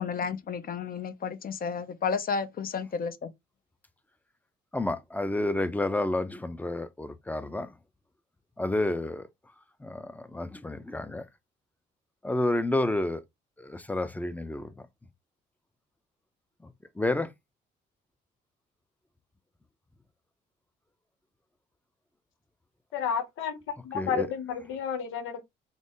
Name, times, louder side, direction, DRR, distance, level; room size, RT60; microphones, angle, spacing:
voice 1, 0.0-3.3, left 6 dB, 45° left, 0.7 m, -32 dB
voice 2, 4.7-7.7 8.6-9.3 9.8-11.2 12.2-13.2 13.6-14.7 16.6-16.7 17.0-17.3 23.9-24.3, left 1 dB, 10° left, 0.6 m, -30 dB
voice 3, 22.9-25.4, left 7 dB, 90° left, 1.0 m, -31 dB
3.8 x 2.1 x 3.6 m
cardioid pair, 90°, 20 cm